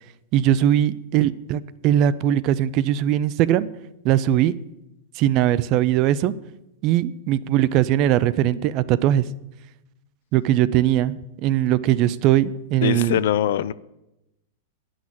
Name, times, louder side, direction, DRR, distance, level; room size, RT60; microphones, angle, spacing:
voice 1, 0.3-3.7 4.0-4.6 5.2-6.3 6.8-9.2 10.3-13.2, right 12 dB, 30° right, 0.4 m, -20 dB
voice 2, 12.8-13.7, left 11 dB, 65° left, 0.4 m, -22 dB
9.6 x 6.3 x 8.7 m
supercardioid pair, 165°, 0 cm